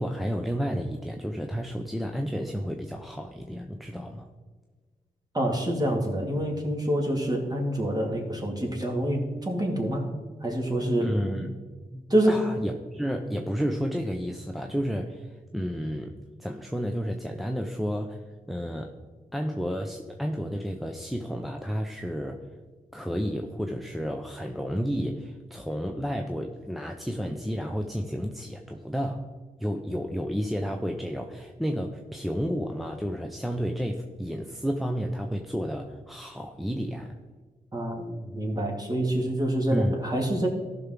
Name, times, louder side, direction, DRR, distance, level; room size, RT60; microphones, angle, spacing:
voice 1, 0.0-4.3 10.8-11.6 11.9-18.2 18.5-18.9 19.3-22.4 22.9-29.3 29.6-37.2 39.7-40.0, equal, ahead, 2 dB, 0.8 m, -31 dB
voice 2, 5.3-10.1 10.4-11.1 12.1-12.4 37.7-40.5, right 1 dB, 25° right, 0 dB, 2.3 m, -26 dB
14.0 x 6.0 x 3.8 m, 1.4 s
cardioid pair, 55°, 15 cm